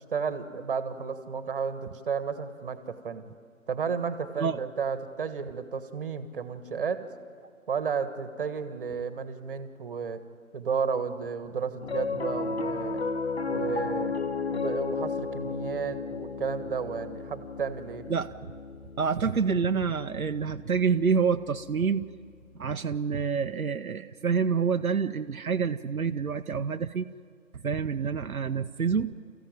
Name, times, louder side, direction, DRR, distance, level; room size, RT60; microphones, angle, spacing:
voice 1, 0.1-3.2 3.7-7.1 7.7-10.2 10.5-13.0 13.5-14.2 14.5-18.1, right 6 dB, 40° right, 10 dB, 1.5 m, -32 dB
Piano, 11.8-22.3, left 4 dB, 50° left, 0.9 m, -34 dB
voice 2, 19.0-22.1 22.6-27.1 27.6-29.1, right 6 dB, 80° right, 7 dB, 0.8 m, -27 dB
29.5 x 15.0 x 9.2 m, 2.1 s
figure-of-eight pair, 150°, 42 cm